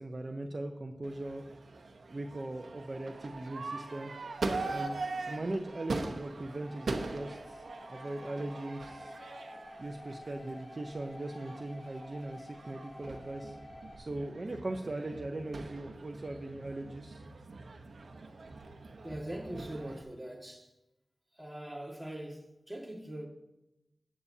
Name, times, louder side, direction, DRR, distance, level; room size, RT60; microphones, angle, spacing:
voice 1, 0.0-1.4 2.1-4.1 4.7-7.6 7.9-9.2 9.8-13.5 14.0-17.2, right 2 dB, 40° right, 0.7 m, -39 dB
Crowd / Fireworks, 1.0-20.0, right 3 dB, 80° right, 0.9 m, -42 dB
sound 1, 6.7-14.0, left 1 dB, 55° left, 1.4 m, -50 dB
voice 2, 19.0-20.7 21.3-23.3, right 1 dB, 5° right, 1.8 m, -42 dB
14.0 x 8.6 x 2.8 m
wide cardioid pair, 80°, 0 cm